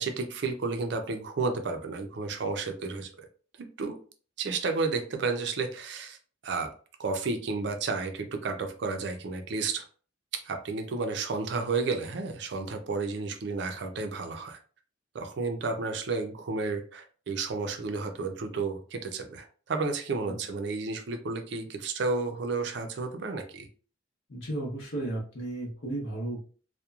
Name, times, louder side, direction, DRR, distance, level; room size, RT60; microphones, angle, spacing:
voice 1, 0.0-3.3 3.6-4.0 4.4-6.2 6.4-6.7 7.0-9.9 10.3-14.6 15.1-23.7, right 4 dB, 60° right, 6 dB, 0.4 m, -32 dB
voice 2, 24.3-26.4, right 2 dB, 85° left, -3 dB, 0.9 m, -34 dB
2.9 x 2.2 x 2.3 m, 0.40 s
head